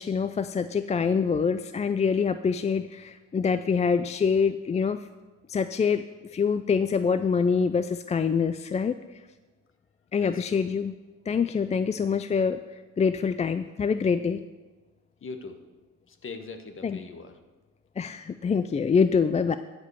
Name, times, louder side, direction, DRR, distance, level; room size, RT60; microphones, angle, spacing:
voice 1, 0.0-5.0 5.5-6.0 6.3-9.0 10.1-10.9 11.3-12.6 13.0-14.4 16.8-17.0 18.0-19.6, left 6 dB, 25° left, 11 dB, 0.4 m, -25 dB
voice 2, 10.2-10.6 15.2-15.6 16.1-17.3, left 4 dB, 45° left, 8 dB, 1.3 m, -40 dB
13.0 x 5.2 x 6.8 m, 1.2 s
cardioid pair, 90°, 30 cm